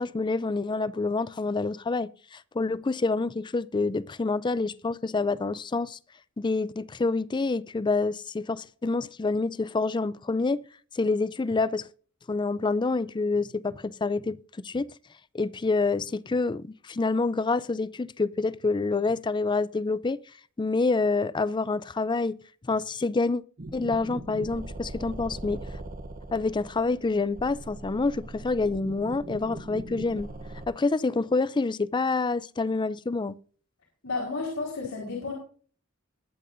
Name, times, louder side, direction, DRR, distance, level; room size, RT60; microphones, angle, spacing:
voice 1, 0.0-6.0 6.4-10.6 10.9-11.8 12.3-14.9 15.3-20.2 20.6-22.4 22.7-23.4 23.7-25.7 26.3-30.3 30.7-33.4, left 3 dB, 20° left, 0.4 m, -27 dB
sound 1, 23.6-30.7, right 2 dB, 40° right, 0.9 m, -40 dB
voice 2, 34.0-35.3, left 3 dB, 90° left, 4.1 m, -32 dB
21.0 x 8.5 x 2.6 m
head